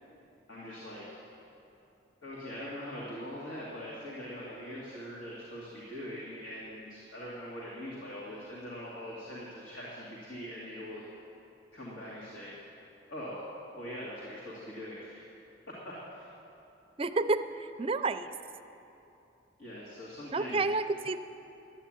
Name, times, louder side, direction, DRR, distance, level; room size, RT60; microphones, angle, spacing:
voice 1, 0.5-1.1 2.2-11.1 11.7-12.5 13.1-13.4 13.7-15.2 15.7-16.3 19.6-20.7, equal, 85° left, -7 dB, 2.3 m, -42 dB
voice 2, 17.0-18.3 20.3-21.2, right 3 dB, 30° right, 9 dB, 0.4 m, -30 dB
11.5 x 9.2 x 9.0 m, 2.9 s
head